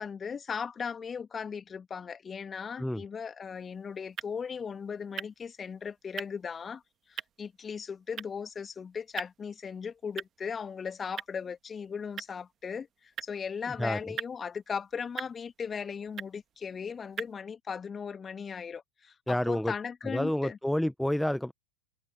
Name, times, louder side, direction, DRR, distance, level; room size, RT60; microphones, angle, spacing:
voice 1, 0.0-6.8 7.1-20.6, left 6 dB, 20° left, 2.1 m, -37 dB
sound 1, 3.4-17.3, right 9 dB, 25° right, 2.2 m, -46 dB
voice 2, 19.3-19.7 20.0-21.5, left 1 dB, ahead, 0.9 m, -29 dB
figure-of-eight pair, 90°, 0 cm